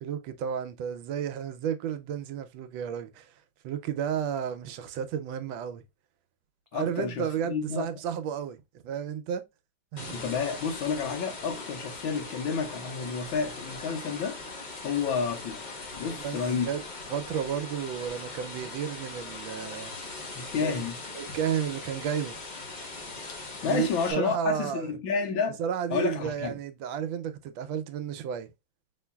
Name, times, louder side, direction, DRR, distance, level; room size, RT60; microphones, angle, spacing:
voice 1, 0.0-3.3 3.6-5.8 6.7-9.4 9.9-10.2 16.1-16.4 16.6-16.8 17.1-19.9 20.6-20.8 21.1-22.4 23.6-24.9 25.6-28.5, right 8 dB, 80° right, 1.3 m, -32 dB
voice 2, 6.7-7.9 10.1-14.4 14.8-15.6 16.0-16.7 20.3-21.0 23.6-25.6 25.9-26.6, left 6 dB, 85° left, 1.7 m, -30 dB
sound 1, 10.0-24.1, left 3 dB, 55° left, 0.5 m, -40 dB
5.6 x 3.1 x 2.2 m
omnidirectional pair, 2.1 m